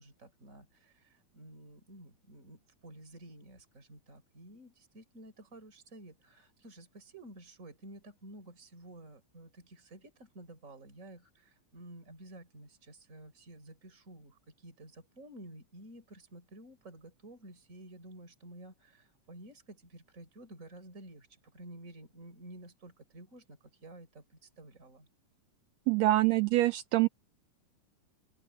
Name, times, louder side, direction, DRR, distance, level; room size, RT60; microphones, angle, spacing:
voice 1, 0.0-25.1, right 1 dB, 25° right, 4.7 m, -52 dB
voice 2, 25.9-27.1, right 17 dB, 80° right, 1.7 m, -25 dB
open air
omnidirectional pair, 3.3 m